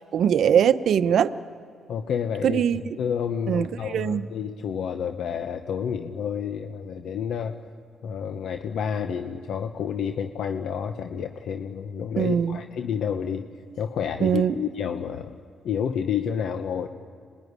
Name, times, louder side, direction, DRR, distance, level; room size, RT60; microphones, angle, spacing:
voice 1, 0.1-1.3 2.4-2.8 3.5-4.3 12.2-12.6 14.2-14.5, right 8 dB, 65° right, 12 dB, 0.8 m, -21 dB
voice 2, 1.9-2.6 3.0-7.6 8.0-13.5 13.8-15.3 15.6-16.9, left 7 dB, 75° left, 7 dB, 0.9 m, -29 dB
26.0 x 21.0 x 9.7 m, 2.4 s
cardioid pair, 90°, 0 cm